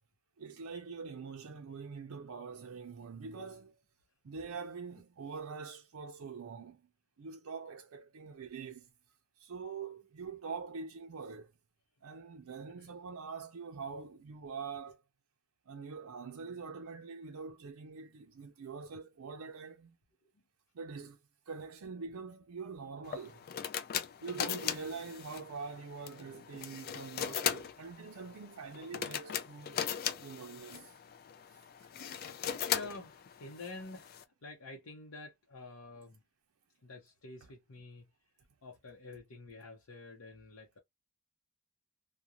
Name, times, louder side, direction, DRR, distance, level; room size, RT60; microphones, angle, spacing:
voice 1, 0.4-3.8 4.2-6.8 7.2-8.9 9.4-11.5 12.0-15.0 15.7-20.0 20.7-21.2 21.5-23.4 24.2-29.8 30.2-31.0, right 5 dB, 75° right, 0.5 m, -44 dB
sound 1, 23.0-34.2, left 9 dB, 45° left, 0.3 m, -39 dB
voice 2, 32.7-36.2 36.8-38.1 38.6-40.8, left 2 dB, 70° left, 0.7 m, -48 dB
2.4 x 2.1 x 2.8 m
head